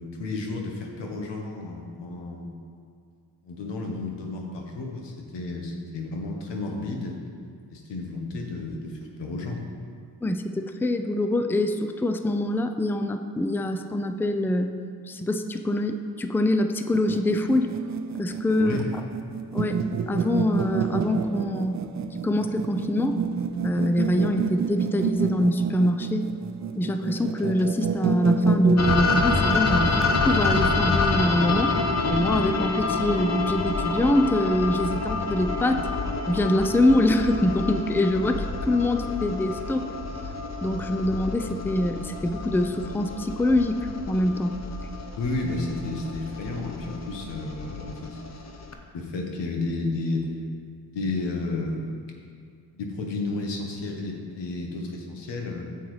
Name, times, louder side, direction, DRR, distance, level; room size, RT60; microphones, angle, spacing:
voice 1, 0.0-2.5 3.4-7.2 7.7-9.6 18.6-18.9 45.2-48.4 48.9-50.3 50.9-51.9 52.7-55.6, left 2 dB, 90° left, 1 dB, 1.1 m, -32 dB
voice 2, 10.2-14.7 15.1-17.7 18.2-18.8 19.5-21.7 22.2-23.2 23.6-26.3 26.8-29.9 30.2-31.7 32.1-35.9 36.3-39.9 40.6-43.8 44.1-44.6, left 1 dB, 5° left, 7 dB, 0.4 m, -24 dB
sound 1, 16.9-30.7, right 4 dB, 45° right, 0.5 m, -27 dB
sound 2, 28.8-48.7, left 3 dB, 40° left, 0.9 m, -28 dB
9.2 x 7.2 x 3.2 m, 2.2 s
cardioid pair, 50°, 41 cm